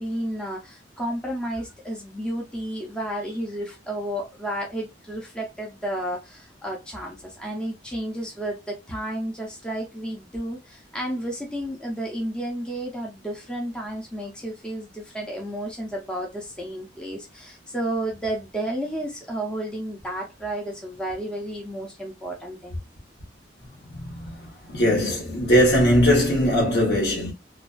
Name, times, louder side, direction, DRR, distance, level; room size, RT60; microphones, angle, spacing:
voice 1, 0.0-22.8, right 1 dB, 5° left, 0.5 m, -32 dB
voice 2, 23.9-27.3, equal, 65° left, 1.0 m, -20 dB
2.4 x 2.3 x 2.3 m
head